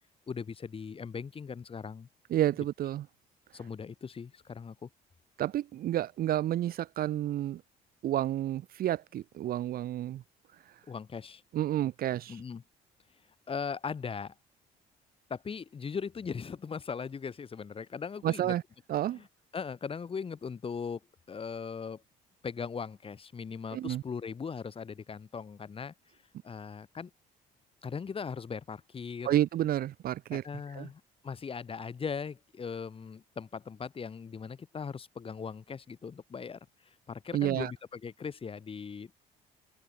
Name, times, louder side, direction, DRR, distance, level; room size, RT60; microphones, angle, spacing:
voice 1, 0.3-2.1 3.5-4.9 10.9-11.4 12.3-12.6 13.5-14.3 15.3-18.5 19.1-19.3 19.5-21.0 21.3-22.0 22.4-25.9 26.4-27.1 27.8-29.3 30.3-39.1, left 6 dB, 35° left, 4.7 m, -39 dB
voice 2, 2.3-3.0 5.4-7.6 8.0-10.2 11.5-12.4 18.2-18.6 18.9-19.2 23.7-24.0 29.2-30.4 30.7-30.9 37.3-37.7, right 12 dB, 60° right, 1.3 m, -30 dB
open air
cardioid pair, 110°, 17 cm